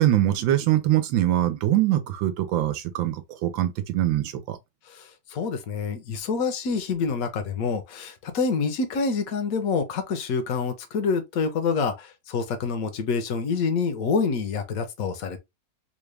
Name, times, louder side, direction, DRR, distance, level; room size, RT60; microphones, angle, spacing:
voice 1, 0.0-4.6, right 13 dB, 85° right, 1.4 m, -23 dB
voice 2, 5.3-11.9 12.3-15.4, left 5 dB, 60° left, 1.0 m, -26 dB
3.8 x 2.3 x 3.2 m
omnidirectional pair, 2.0 m